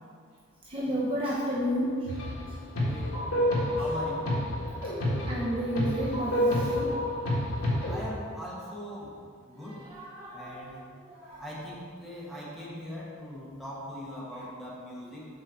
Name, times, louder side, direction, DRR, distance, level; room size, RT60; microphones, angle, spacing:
voice 1, 0.7-2.1 4.7-7.2 9.6-10.7 11.1-11.4, equal, 25° right, -6 dB, 0.8 m, -32 dB
sound 1, 2.1-2.5 2.7-8.0, left 1 dB, 80° left, 1.7 m, -29 dB
voice 2, 2.8-3.5 3.8-4.3 7.9-9.8 10.3-10.9 11.4-15.3, equal, ahead, -7 dB, 1.5 m, -40 dB
5.7 x 4.7 x 6.4 m, 2.1 s
head